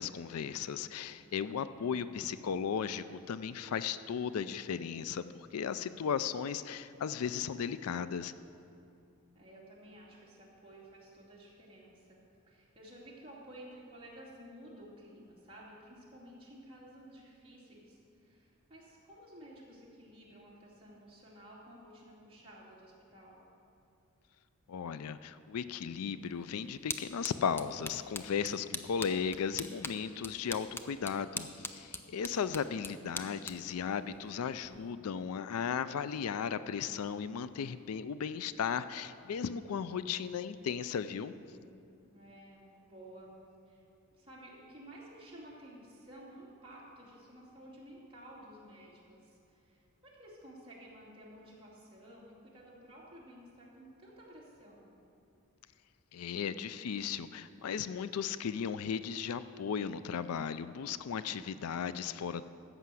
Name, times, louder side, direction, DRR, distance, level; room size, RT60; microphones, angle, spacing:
voice 1, 0.0-8.3 24.7-41.3 56.1-62.4, left 7 dB, 80° left, 14 dB, 0.4 m, -36 dB
voice 2, 1.2-2.2 9.3-12.2 12.5-23.4 41.2-43.4 43.7-43.8 44.1-54.9, right 1 dB, 25° right, -6 dB, 2.6 m, -53 dB
sound 1, 26.2-34.9, left 3 dB, 10° left, 0.4 m, -44 dB
14.0 x 5.7 x 7.7 m, 2.6 s
head